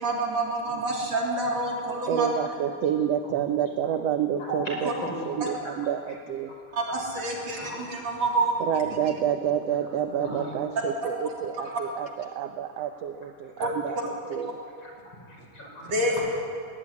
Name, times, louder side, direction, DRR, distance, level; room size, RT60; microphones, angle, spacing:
voice 1, 0.0-2.3 6.7-8.5 13.6-13.7 15.9-16.1, right 2 dB, 55° right, -1 dB, 4.4 m, -27 dB
voice 2, 0.7-1.0 2.1-2.2 3.2-3.3 3.8-3.9 4.4-5.8 6.5-7.0 7.4-8.1 10.2-10.5 11.6-11.7 12.6-12.8 13.6-13.7 14.8-16.2, equal, 35° left, -1 dB, 6.4 m, -38 dB
voice 3, 2.1-4.9 5.3-6.5 8.6-14.6, right 9 dB, 70° right, 8 dB, 1.6 m, -28 dB
21.0 x 19.0 x 9.7 m, 2.3 s
omnidirectional pair, 3.6 m